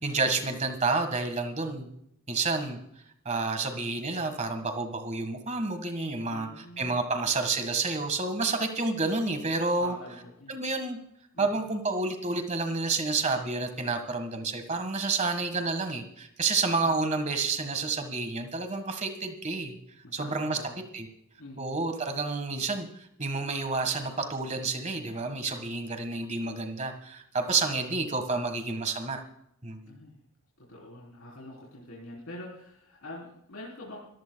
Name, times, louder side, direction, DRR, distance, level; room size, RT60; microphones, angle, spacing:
voice 1, 0.0-1.9 2.3-2.8 3.2-9.9 10.5-11.0 11.4-19.8 20.1-20.6 20.9-21.0 21.6-22.9 23.2-29.2 29.6-29.9, right 3 dB, 30° right, 7 dB, 1.6 m, -29 dB
voice 2, 6.3-7.0 9.8-10.6 11.3-11.6 16.8-17.0 20.0-20.7 21.4-21.9 29.9-30.2 30.6-34.0, left 1 dB, 75° left, -4 dB, 3.7 m, -45 dB
26.0 x 14.5 x 2.3 m, 0.75 s
head